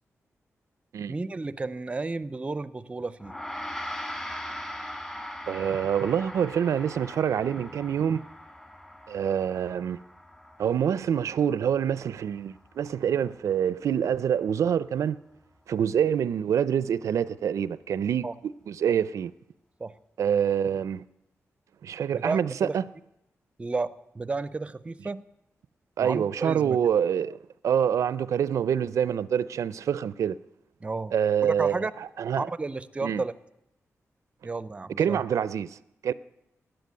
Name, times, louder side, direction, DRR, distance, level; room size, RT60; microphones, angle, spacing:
voice 1, 1.1-3.3 18.2-18.3 19.8-19.9 22.1-22.8 23.6-25.2 26.0-26.8 30.8-31.1 31.4-31.9 32.4-33.3 34.4-35.3, right 3 dB, 25° right, 0.5 m, -32 dB
Gong, 3.2-12.8, left 1 dB, 15° left, 2.0 m, -40 dB
voice 2, 5.5-8.2 9.1-10.0 10.6-15.2 15.7-19.3 20.2-21.0 21.8-22.8 26.0-27.4 27.6-30.4 31.1-31.9 32.2-32.5 33.0-33.2 35.0-35.8 36.0-36.1, right 8 dB, 90° right, 0.4 m, -26 dB
13.0 x 8.9 x 9.4 m
wide cardioid pair, 145°, 5 cm